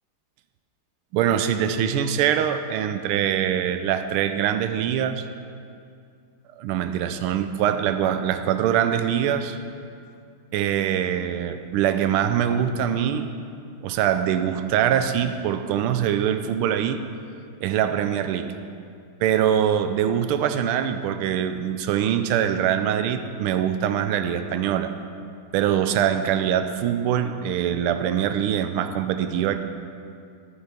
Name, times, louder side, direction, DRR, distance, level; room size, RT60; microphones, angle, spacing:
voice 1, 1.1-5.3 6.6-9.6 10.5-13.3 13.8-17.0 17.6-18.5 19.2-24.9 25.5-29.6, right 9 dB, 90° right, 9 dB, 1.5 m, -23 dB
13.0 x 9.6 x 3.5 m, 2.4 s
omnidirectional pair, 2.3 m